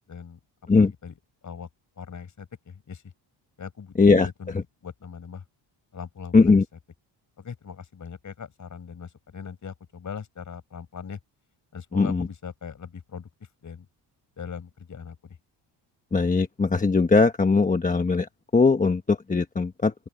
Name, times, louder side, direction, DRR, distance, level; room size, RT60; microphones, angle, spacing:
voice 1, 0.1-0.4 0.8-1.1 1.4-1.7 2.0-3.1 3.6-4.6 4.8-5.4 5.9-6.6 7.4-11.2 11.7-13.3 13.6-13.9 14.4-15.4, left 6 dB, 40° left, 5.6 m, -40 dB
voice 2, 6.3-6.6 11.9-12.3 16.1-19.9, left 4 dB, 15° left, 1.1 m, -20 dB
open air
cardioid pair, 140°, 46 cm